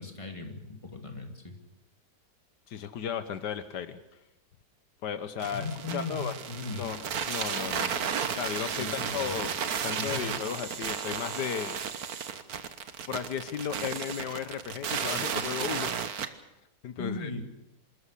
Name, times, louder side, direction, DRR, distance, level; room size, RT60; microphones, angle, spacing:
voice 1, 0.0-1.6 5.5-6.8 8.8-9.4 10.0-10.3 17.0-17.4, left 3 dB, 20° left, 4 dB, 2.6 m, -38 dB
voice 2, 2.7-4.0 5.0-5.7 5.9-6.3 6.7-7.9 8.3-9.5 9.8-11.8 13.1-15.9 16.8-17.3, left 8 dB, 80° left, 11 dB, 1.6 m, -35 dB
sound 1, 5.4-16.3, right 7 dB, 65° right, 1.6 m, -33 dB
26.5 x 13.5 x 8.4 m, 0.93 s
omnidirectional pair, 1.8 m